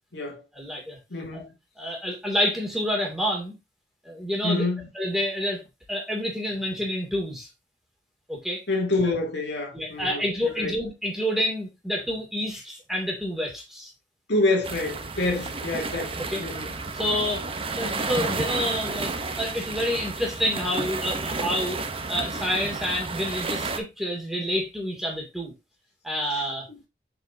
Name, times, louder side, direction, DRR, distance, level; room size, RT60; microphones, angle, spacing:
voice 1, 0.5-1.0 1.3-1.5 1.8-3.6 4.0-4.7 4.9-5.6 5.9-7.5 8.3-8.6 9.7-13.9 16.2-16.4 16.9-21.8 22.1-25.5 26.0-26.7, equal, ahead, 2.6 m, -28 dB
voice 2, 1.1-1.5 4.4-4.9 8.7-10.8 14.3-17.1 26.7-26.8, left 2 dB, 70° left, 2.5 m, -27 dB
sound 1, 14.6-23.8, right 3 dB, 30° right, 0.9 m, -31 dB
7.7 x 5.1 x 2.8 m
head